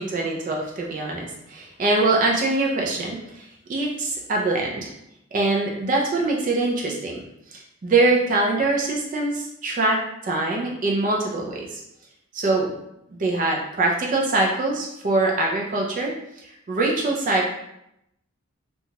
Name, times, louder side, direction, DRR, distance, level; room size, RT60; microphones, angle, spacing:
voice 1, 0.0-4.9 5.3-7.2 7.5-11.8 12.3-12.7 13.1-16.1 16.4-17.5, right 2 dB, 35° right, -1 dB, 0.3 m, -23 dB
2.8 x 2.2 x 2.7 m, 0.81 s
head